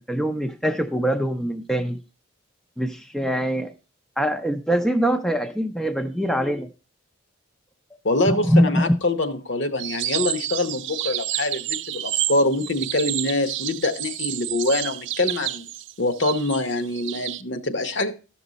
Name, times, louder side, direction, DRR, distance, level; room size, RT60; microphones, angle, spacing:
voice 1, 0.1-2.0 2.8-3.7 4.2-6.7 8.3-8.9, equal, ahead, 6 dB, 0.4 m, -23 dB
voice 2, 8.0-15.7 16.0-18.1, left 2 dB, 60° left, 9 dB, 0.9 m, -24 dB
sound 1, 9.8-17.4, right 14 dB, 60° right, 0.4 m, -30 dB
13.0 x 6.1 x 4.0 m, 0.32 s
head